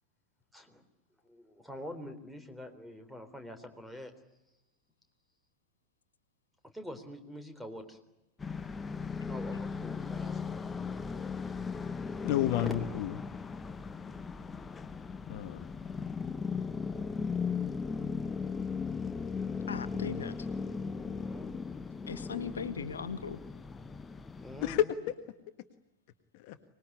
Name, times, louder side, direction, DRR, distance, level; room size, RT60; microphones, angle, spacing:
voice 1, 0.5-0.8 1.2-4.1 6.6-8.0 9.3-10.4 12.6-12.7 13.9-14.3 20.9-21.5 24.4-24.9, left 1 dB, ahead, 7 dB, 3.9 m, -45 dB
sound 1, 8.4-24.8, left 5 dB, 15° left, 1.1 m, -37 dB
voice 2, 12.2-13.2 15.3-15.6 24.6-25.1 26.3-26.6, left 12 dB, 45° left, 9 dB, 1.6 m, -30 dB
voice 3, 19.7-20.5 22.1-23.4, left 6 dB, 70° left, 11 dB, 1.5 m, -38 dB
25.0 x 20.5 x 9.9 m, 0.93 s
figure-of-eight pair, 90°, 0 cm